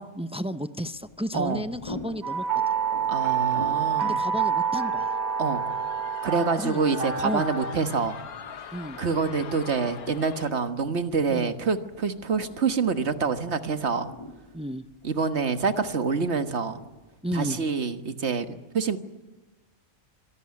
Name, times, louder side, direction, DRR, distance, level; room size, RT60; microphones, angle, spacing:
voice 1, 0.1-2.4 4.0-5.2 6.6-6.8 7.2-7.5 8.7-9.0 11.3-11.5 14.5-14.9 17.2-17.6, equal, 10° right, 11 dB, 0.4 m, -32 dB
sound 1, 0.9-17.2, left 2 dB, 20° left, 2.0 m, -47 dB
sound 2, 2.2-7.8, right 7 dB, 70° right, 1.7 m, -27 dB
voice 2, 3.1-4.2 5.4-5.6 6.2-8.2 9.0-14.1 15.0-16.8 17.3-19.0, right 5 dB, 50° right, 8 dB, 1.7 m, -26 dB
sound 3, 5.2-10.5, left 7 dB, 85° left, 1.7 m, -42 dB
26.0 x 18.0 x 9.7 m, 1.1 s
omnidirectional pair, 1.5 m